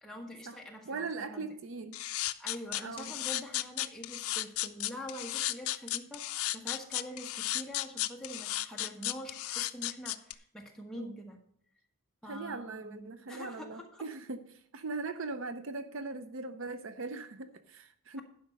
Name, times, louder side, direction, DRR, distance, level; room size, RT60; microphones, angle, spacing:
voice 1, 0.0-0.9 1.2-1.6 2.4-11.4 12.2-14.1, equal, ahead, 1.3 m, -45 dB
voice 2, 0.9-2.0 2.8-3.1 10.9-11.1 12.3-18.2, right 3 dB, 60° right, 0.6 m, -40 dB
sound 1, 1.9-10.3, left 15 dB, 75° left, 0.5 m, -34 dB
11.0 x 5.2 x 6.4 m
head